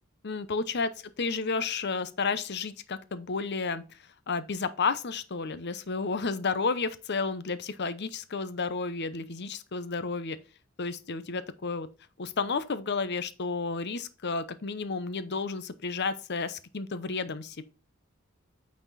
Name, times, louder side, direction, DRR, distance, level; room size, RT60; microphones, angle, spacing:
voice 1, 0.2-0.9 1.2-3.8 4.3-10.4 10.8-11.9 12.2-17.6, left 4 dB, 55° left, 0.8 m, -31 dB
9.0 x 4.3 x 4.1 m
head